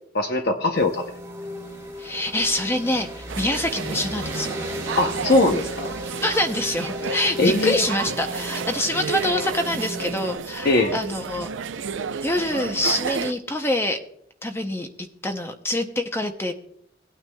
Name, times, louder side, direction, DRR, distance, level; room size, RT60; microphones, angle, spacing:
voice 1, 0.1-1.0 5.0-5.9 7.4-7.8 10.6-11.0, left 2 dB, 55° left, 4 dB, 0.7 m, -20 dB
sound 1, 0.7-10.4, left 1 dB, 15° right, 1.6 m, -35 dB
voice 2, 2.0-4.5 6.2-11.5 12.2-14.0 14.4-16.5, left 1 dB, 15° left, 6 dB, 0.6 m, -25 dB
sound 2, 3.3-13.3, right 6 dB, 75° right, 0.5 m, -32 dB
18.0 x 9.1 x 2.2 m, 0.70 s
head